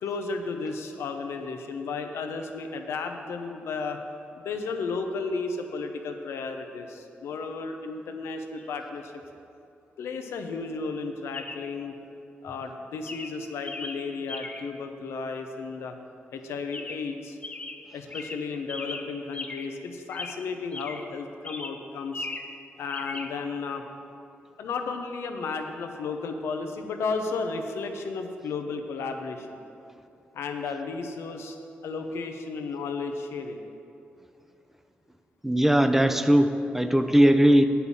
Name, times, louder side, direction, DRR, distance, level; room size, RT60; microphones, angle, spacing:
voice 1, 0.0-4.0 4.3-9.1 10.0-11.9 12.4-16.0 16.3-17.4 17.9-22.3 22.8-23.8 24.6-29.6 30.3-31.6 31.8-33.6, left 4 dB, 80° left, 5 dB, 0.8 m, -33 dB
Chirp tweet, 8.6-8.7 11.3-11.7 12.5-12.7 13.1-14.8 16.7-17.2 17.4-19.8 20.1-21.1 21.4-22.6 22.9-23.3, left 3 dB, 30° left, 0.8 m, -39 dB
voice 2, 35.4-37.7, right 1 dB, 5° right, 8 dB, 0.6 m, -19 dB
8.1 x 5.6 x 7.1 m, 2.6 s
cardioid pair, 55°, 4 cm